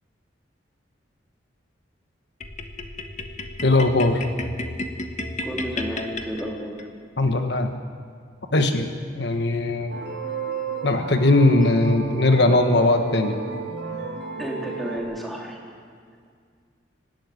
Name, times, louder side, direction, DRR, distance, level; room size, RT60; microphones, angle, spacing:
sound 1, 2.4-6.9, left 2 dB, 40° left, 1.5 m, -33 dB
voice 1, 3.6-4.2 7.2-7.7 8.5-8.9 9.1-10.0 10.8-13.4, left 2 dB, 65° left, 6 dB, 1.3 m, -19 dB
voice 2, 5.4-6.8 11.6-11.7 14.4-15.6, equal, ahead, -2 dB, 3.4 m, -31 dB
sound 2, 9.9-15.0, right 5 dB, 75° right, 2.5 m, -32 dB
25.0 x 12.0 x 9.6 m, 2.1 s
head